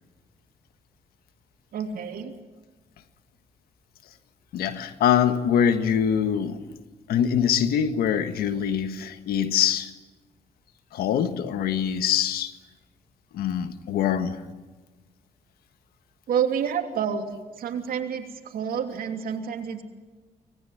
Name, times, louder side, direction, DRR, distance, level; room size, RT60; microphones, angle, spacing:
voice 1, 1.7-2.3 16.3-17.3 17.6-19.8, right 7 dB, 75° right, 3.0 m, -28 dB
voice 2, 4.5-6.6 7.1-9.9 10.9-12.5 13.3-14.4, left 8 dB, 85° left, 1.6 m, -24 dB
25.0 x 19.5 x 9.6 m
cardioid pair, 70°, 15 cm